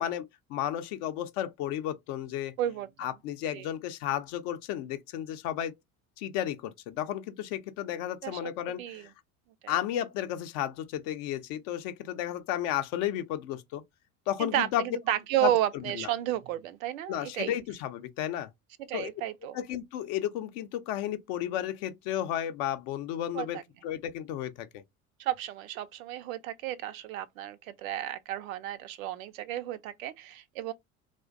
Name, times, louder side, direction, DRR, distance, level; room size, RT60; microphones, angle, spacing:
voice 1, 0.0-2.5 3.0-5.7 6.2-9.1 9.7-13.8 14.3-14.8 15.4-15.5 15.9-16.1 17.1-18.5 18.9-19.1 19.5-24.8, left 11 dB, 50° left, 0.5 m, -33 dB
voice 2, 2.6-3.1 3.5-3.7 8.2-9.1 9.6-9.7 14.4-17.6 18.9-19.6 23.3-23.6 25.2-30.7, right 13 dB, 70° right, 0.5 m, -32 dB
2.4 x 2.1 x 2.4 m
hypercardioid pair, 70°, 44 cm